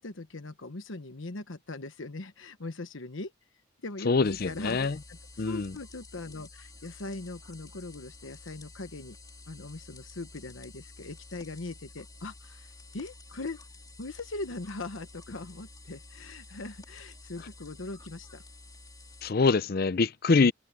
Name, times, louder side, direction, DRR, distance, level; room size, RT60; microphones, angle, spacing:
voice 1, 0.0-3.3 3.8-5.2 5.4-9.2 9.5-13.6 14.0-18.4, left 2 dB, 80° left, 1.1 m, -40 dB
voice 2, 4.1-5.0 5.4-5.8 19.2-20.5, left 4 dB, 50° left, 0.5 m, -24 dB
sound 1, 4.2-19.3, left 2 dB, 20° left, 3.6 m, -51 dB
head